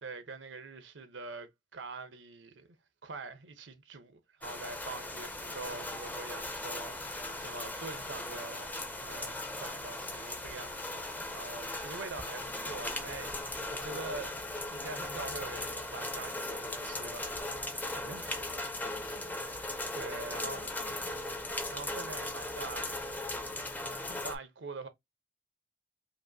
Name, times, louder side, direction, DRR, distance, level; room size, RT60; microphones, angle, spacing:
voice 1, 0.0-2.7 3.0-8.7 9.0-11.1 11.3-14.4 14.7-18.8 19.9-20.7 21.7-24.9, right 3 dB, 85° right, 0.9 m, -45 dB
sound 1, 4.4-24.3, left 2 dB, 10° left, 0.5 m, -38 dB
voice 2, 12.4-12.9 18.8-19.4 20.1-21.4, left 3 dB, 55° left, 1.4 m, -52 dB
5.1 x 2.6 x 2.7 m
head